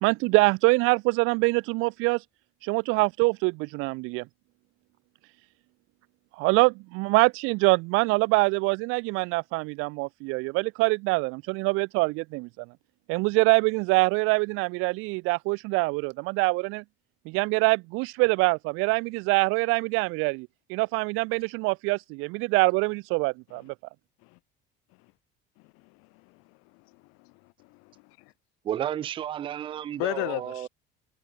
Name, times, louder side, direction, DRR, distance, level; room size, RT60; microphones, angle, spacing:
voice 1, 0.0-2.2 2.6-4.3 6.4-12.7 13.1-16.8 17.3-23.7, right 26 dB, 75° right, 0.6 m, -24 dB
voice 2, 25.6-28.3 30.0-30.7, left 29 dB, 85° left, 2.3 m, -37 dB
voice 3, 28.6-30.7, right 10 dB, 25° right, 0.3 m, -32 dB
cardioid pair, 150°, 21 cm